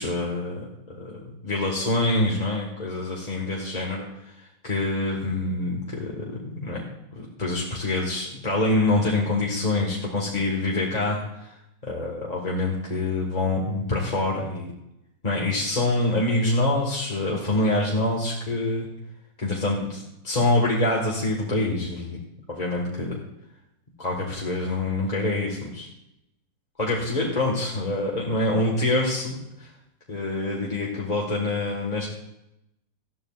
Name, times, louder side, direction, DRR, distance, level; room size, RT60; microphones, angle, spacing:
voice 1, 0.0-6.8 7.1-11.5 11.8-14.7 15.2-18.9 19.4-22.2 22.5-23.2 24.0-25.9 26.8-29.7 30.1-32.1, left 2 dB, 25° left, -2 dB, 1.5 m, -26 dB
18.5 x 13.0 x 2.4 m, 0.87 s
omnidirectional pair, 2.0 m